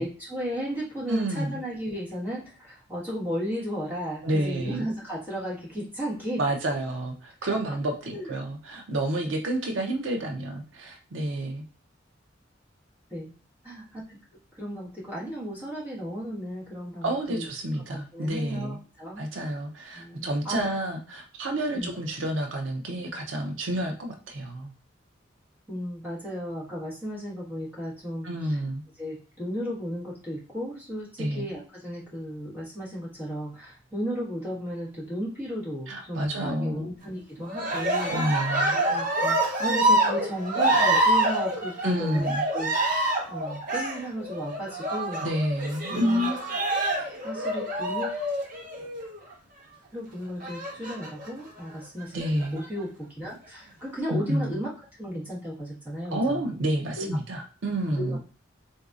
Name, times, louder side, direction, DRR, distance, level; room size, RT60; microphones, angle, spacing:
voice 1, 0.0-6.4 8.1-8.4 13.1-13.3 13.6-14.2 14.5-17.5 17.9-19.5 19.9-20.7 21.7-21.9 25.7-28.3 29.0-38.1 38.7-42.3 42.5-45.2 45.9-46.3 46.8-48.2 49.9-54.7 55.0-56.4 56.9-57.2 58.0-58.2, equal, 10° right, -7 dB, 1.5 m, -34 dB
voice 2, 1.1-1.6 4.2-4.9 6.4-11.6 17.0-18.8 19.2-24.7 28.2-28.8 31.2-31.5 35.9-36.9 37.7-38.7 41.8-42.4 45.2-46.4 52.1-52.6 54.1-54.6 56.1-58.2, right 1 dB, 80° right, 3 dB, 0.6 m, -29 dB
Cheering, 37.5-49.2 50.4-51.3 52.0-52.6, right 1 dB, 45° right, 1.1 m, -26 dB
3.9 x 2.7 x 2.4 m, 0.38 s
head